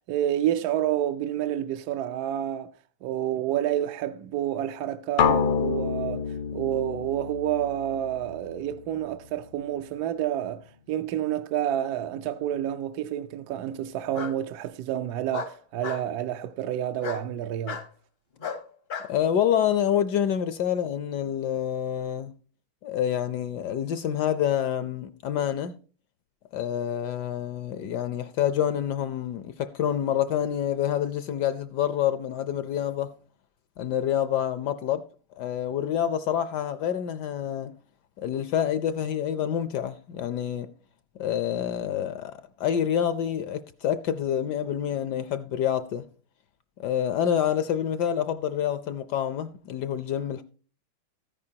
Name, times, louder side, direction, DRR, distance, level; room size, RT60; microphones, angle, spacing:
voice 1, 0.1-2.7 3.0-17.8, right 11 dB, 70° right, 0.9 m, -29 dB
sound 1, 5.2-9.1, left 7 dB, 85° left, 1.7 m, -28 dB
Bark, 12.0-12.6 14.1-14.4 15.3-16.1 17.0-17.2 17.7-17.9 18.4-19.1, left 5 dB, 50° left, 0.7 m, -35 dB
voice 2, 19.0-22.3 22.8-25.7 26.5-33.1 33.8-35.0 35.4-37.7 38.2-40.7 41.2-46.0 46.8-50.4, left 10 dB, 70° left, 1.1 m, -27 dB
13.5 x 9.7 x 2.8 m
omnidirectional pair, 2.2 m